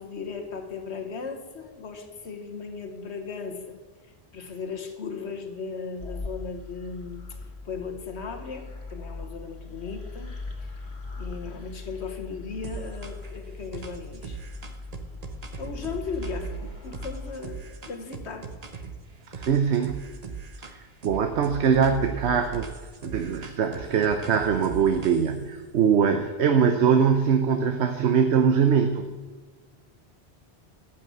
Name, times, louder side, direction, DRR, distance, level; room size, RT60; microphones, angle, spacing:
voice 1, 0.0-3.8 4.0-7.4 7.6-10.8 11.2-14.4 15.6-18.5, left 5 dB, 85° left, 5 dB, 1.6 m, -37 dB
sound 1, 6.0-17.3, left 3 dB, 70° left, 1.9 m, -40 dB
sound 2, 12.6-13.4 13.7-19.0 19.3-20.8 21.0-25.5, right 5 dB, 40° right, 0.9 m, -39 dB
voice 2, 19.4-20.0 20.6-22.7 23.0-29.1, right 7 dB, 85° right, 7 dB, 1.1 m, -22 dB
13.5 x 6.0 x 7.7 m, 1.4 s
omnidirectional pair, 1.1 m